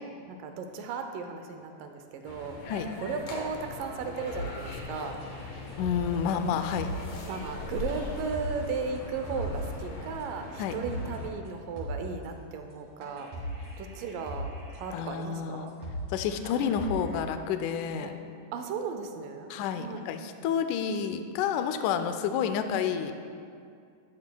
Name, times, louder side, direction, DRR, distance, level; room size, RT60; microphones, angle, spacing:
voice 1, 0.3-2.6 3.0-5.2 7.3-13.3 13.8-14.5 14.8-15.8 18.0-18.2 18.5-19.5 19.8-20.1 22.6-22.7, right 5 dB, 80° right, 5 dB, 2.2 m, -36 dB
sound 1, 2.2-11.3, left 3 dB, 60° left, 1.7 m, -41 dB
sound 2, 4.3-9.8 10.2-10.3 10.7-11.2 11.4-11.5 11.8-12.2 12.7-12.8 13.0-14.9 15.3-15.4 15.7-16.2 16.4-17.2, equal, 65° right, 4.1 m, -39 dB
voice 2, 5.8-6.9 10.6-10.8 14.9-15.7 16.1-18.1 19.5-23.1, left 7 dB, 80° left, 8 dB, 1.8 m, -29 dB
12.5 x 11.5 x 2.3 m, 2.3 s
omnidirectional pair, 4.1 m